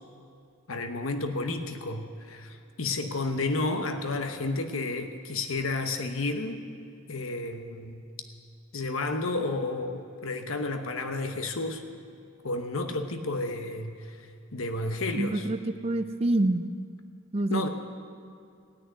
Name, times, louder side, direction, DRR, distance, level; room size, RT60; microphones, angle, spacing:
voice 1, 0.7-6.6 7.1-8.0 8.7-11.8 12.4-15.5 17.5-17.7, left 2 dB, 75° left, 6 dB, 1.0 m, -31 dB
voice 2, 15.2-16.6 17.3-17.7, right 2 dB, 30° right, 10 dB, 0.5 m, -26 dB
17.0 x 6.4 x 9.4 m, 2.4 s
head